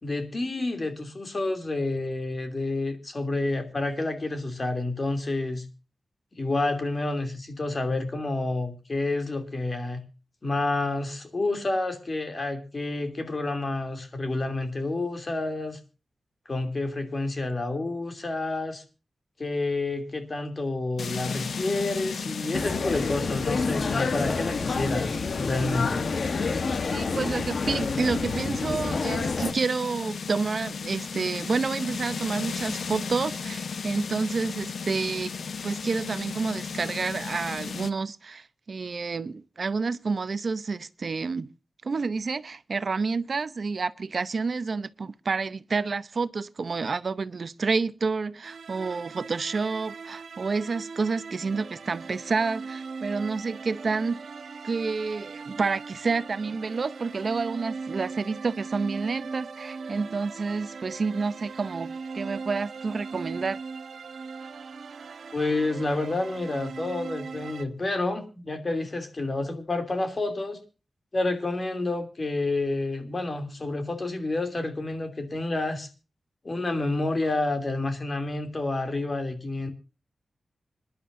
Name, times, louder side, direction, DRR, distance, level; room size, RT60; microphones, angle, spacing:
voice 1, 0.0-5.6 6.4-10.0 10.4-15.8 16.5-18.8 19.4-26.1 65.3-70.6 71.1-75.9 76.4-79.7, left 2 dB, 35° left, 2.9 m, -29 dB
sound 1, 21.0-37.9, left 5 dB, 75° left, 1.0 m, -35 dB
sound 2, 22.5-29.5, left 4 dB, 55° left, 1.2 m, -28 dB
voice 2, 26.9-35.3 35.6-41.5 41.8-54.2 54.6-63.6, right 4 dB, 50° right, 0.7 m, -29 dB
sound 3, 48.4-67.7, right 4 dB, 75° right, 1.0 m, -39 dB
26.5 x 11.5 x 2.6 m
wide cardioid pair, 140°, 0 cm